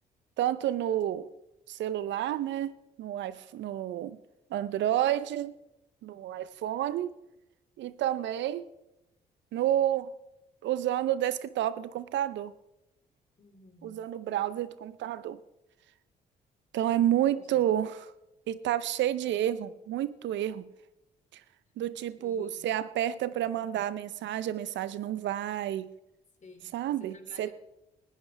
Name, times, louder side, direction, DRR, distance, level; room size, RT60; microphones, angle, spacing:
voice 1, 0.4-1.3 1.7-4.2 4.5-5.5 6.0-7.2 7.8-8.6 9.5-10.1 10.6-12.5 13.8-15.4 16.7-18.0 18.5-20.7 21.8-25.9 26.7-27.5, right 12 dB, 70° right, 16 dB, 0.7 m, -30 dB
voice 2, 13.4-14.0 16.9-17.7 22.2-22.7 26.4-27.5, left 3 dB, 40° left, 5 dB, 3.0 m, -53 dB
19.5 x 14.0 x 3.4 m, 0.91 s
hypercardioid pair, 55°, 20 cm